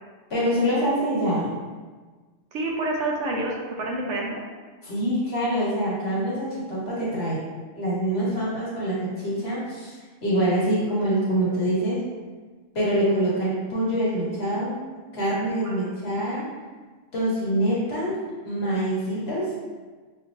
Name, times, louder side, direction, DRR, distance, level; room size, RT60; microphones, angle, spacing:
voice 1, 0.3-1.5 4.8-7.4 7.7-9.9 10.2-12.0 12.7-14.8 15.1-16.5 17.1-18.1 18.4-19.5, right 1 dB, 55° left, -7 dB, 1.5 m, -25 dB
voice 2, 2.5-4.4 15.6-15.8, right 2 dB, 70° right, -1 dB, 0.9 m, -28 dB
5.6 x 3.0 x 2.5 m, 1.4 s
omnidirectional pair, 1.3 m